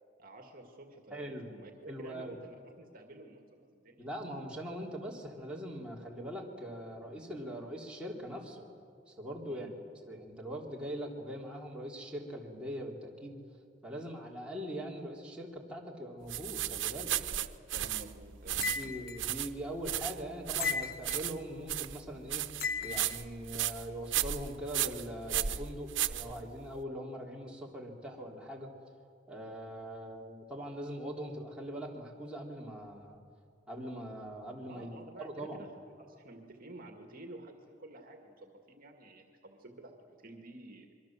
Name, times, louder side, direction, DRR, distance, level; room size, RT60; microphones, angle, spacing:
voice 1, 0.2-4.1 9.5-9.7 17.3-17.5 17.7-19.0 34.7-35.7 36.0-40.9, right 1 dB, 50° right, 4 dB, 2.2 m, -51 dB
voice 2, 1.1-1.5 1.9-2.4 4.0-8.7 9.1-9.7 10.1-13.4 13.8-17.1 18.7-22.4 22.8-28.7 29.3-33.2 33.7-35.6, equal, 5° right, -3 dB, 3.6 m, -42 dB
sound 1, 16.3-26.8, right 12 dB, 90° right, 0.9 m, -35 dB
sound 2, 18.6-19.2 20.6-21.3 22.6-23.2, left 5 dB, 55° left, 1.7 m, -35 dB
26.5 x 23.5 x 7.5 m, 2.3 s
head